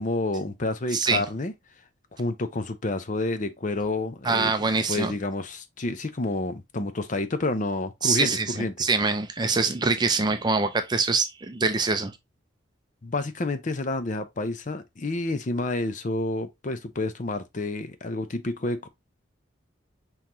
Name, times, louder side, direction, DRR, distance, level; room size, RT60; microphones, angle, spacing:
voice 1, 0.0-1.5 2.2-4.5 4.9-8.7 13.0-18.9, left 2 dB, 40° left, 0.6 m, -29 dB
voice 2, 0.9-1.2 4.2-5.1 8.0-12.2, right 4 dB, 20° right, 0.5 m, -24 dB
5.6 x 3.1 x 2.7 m
head